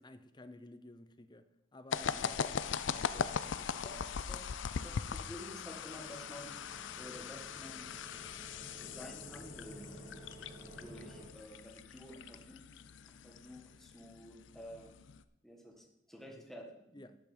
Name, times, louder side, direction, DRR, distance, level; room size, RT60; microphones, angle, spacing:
voice 1, 0.0-4.1 12.1-12.2 16.9-17.2, left 1 dB, 25° left, 0.6 m, -54 dB
sound 1, 1.9-15.2, left 6 dB, 70° left, 0.5 m, -40 dB
voice 2, 3.8-4.5 4.8-6.6 7.0-7.9 8.8-10.0 10.8-12.6 13.1-14.9 15.4-17.1, equal, ahead, 1.5 m, -51 dB
sound 2, 5.1-11.3, right 1 dB, 25° right, 1.8 m, -53 dB
11.0 x 8.1 x 5.0 m
head